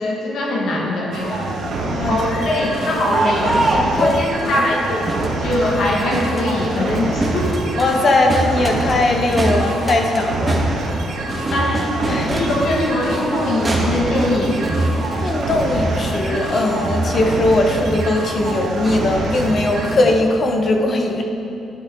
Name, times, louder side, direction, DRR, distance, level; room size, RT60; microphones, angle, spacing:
voice 1, 0.0-1.5 2.1-5.1 5.4-7.6 11.5-11.8 12.1-14.6, left 1 dB, 70° left, -3 dB, 1.8 m, -21 dB
sound 1, 1.1-19.9, right 2 dB, 70° right, 1.5 m, -26 dB
voice 2, 1.8-2.2 4.0-4.6 7.8-10.6 12.0-12.3 15.2-21.2, left 2 dB, 45° left, 3 dB, 1.0 m, -19 dB
Crowd, 2.4-20.1, right 1 dB, 20° right, 1.7 m, -25 dB
10.5 x 10.0 x 3.8 m, 2.7 s
cardioid pair, 90°, 0 cm